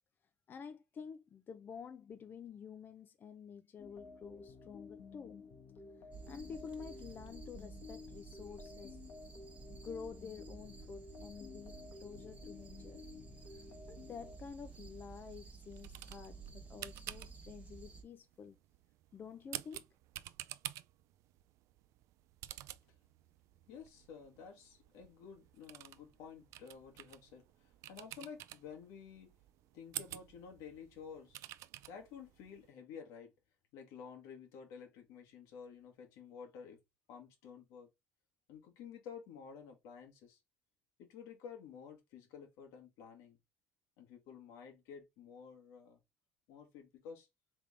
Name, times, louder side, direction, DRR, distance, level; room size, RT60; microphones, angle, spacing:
voice 1, 0.5-5.5 6.3-9.0 9.7-13.0 13.9-18.6 19.1-19.9, left 6 dB, 40° left, 0.5 m, -50 dB
sound 1, 3.8-14.4, left 4 dB, 70° left, 1.2 m, -53 dB
sound 2, 6.1-18.0, right 5 dB, 25° right, 1.1 m, -53 dB
sound 3, 13.9-32.7, right 15 dB, 75° right, 0.3 m, -51 dB
voice 2, 23.7-29.3 29.7-31.4 31.9-33.3 33.7-36.8 37.1-37.9 38.5-40.4 41.0-43.4 44.0-46.0 46.5-47.3, left 6 dB, 85° left, 1.5 m, -52 dB
3.6 x 3.5 x 3.3 m
cardioid pair, 95°, 5 cm